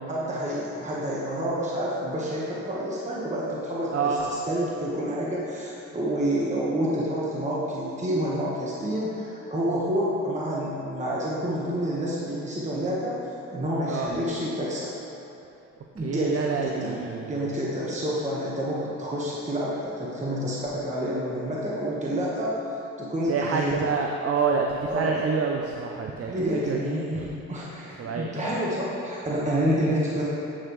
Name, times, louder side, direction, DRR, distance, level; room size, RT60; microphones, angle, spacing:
voice 1, 0.1-14.9 15.9-22.5 23.0-23.9 24.9-25.1 26.2-30.2, equal, 25° right, -6 dB, 1.4 m, -28 dB
voice 2, 16.0-17.5 23.3-26.3 26.7-27.3 28.0-28.5, right 5 dB, 50° right, 1 dB, 0.6 m, -28 dB
8.7 x 7.8 x 3.2 m, 3.0 s
cardioid pair, 90°, 30 cm